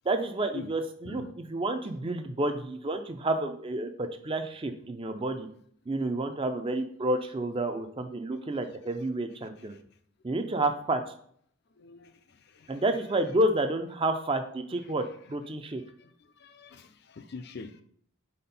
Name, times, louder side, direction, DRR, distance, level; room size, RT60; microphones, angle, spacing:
voice 1, 0.0-5.5 5.9-9.8 10.2-11.1 12.7-15.8, right 1 dB, 25° right, 0.4 m, -30 dB
voice 2, 11.8-12.8 15.3-15.4 16.0-17.8, left 4 dB, 50° left, 0.5 m, -45 dB
4.3 x 4.2 x 5.3 m
head